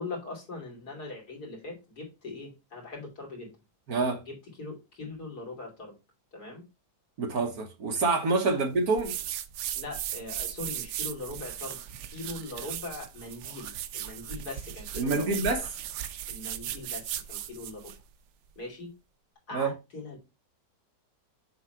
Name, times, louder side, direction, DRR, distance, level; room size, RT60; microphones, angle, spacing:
voice 1, 0.0-3.5 4.3-5.9 6.3-6.6 8.4-8.6 9.7-11.8 12.1-15.2 16.3-17.9 18.6-18.9 19.5-20.2, left 3 dB, 65° left, 3.2 m, -41 dB
voice 2, 3.9-4.2 7.2-9.2 15.0-15.7 19.5-19.7, right 3 dB, 65° right, 1.5 m, -27 dB
sound 1, 9.0-18.0, right 11 dB, 80° right, 1.2 m, -37 dB
7.2 x 3.4 x 4.4 m
omnidirectional pair, 1.8 m